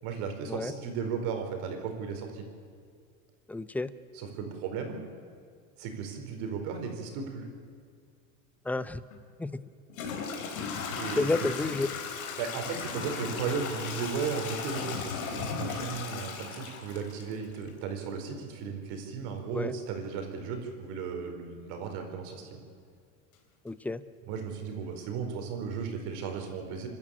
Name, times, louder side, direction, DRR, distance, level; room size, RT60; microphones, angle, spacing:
voice 1, 0.0-2.4 4.2-5.0 5.8-7.5 10.9-11.2 12.4-22.6 24.2-26.9, right 6 dB, 60° right, 4 dB, 4.8 m, -35 dB
voice 2, 3.5-3.9 8.6-9.0 9.4-9.6 11.2-11.9 19.5-19.7 23.6-24.0, left 2 dB, 5° left, 15 dB, 0.5 m, -30 dB
Toilet flush / Trickle dribble, 9.1-9.2 9.9-17.7, left 6 dB, 90° left, 4.0 m, -36 dB
30.0 x 12.5 x 8.8 m, 2.2 s
supercardioid pair, 130°, 41 cm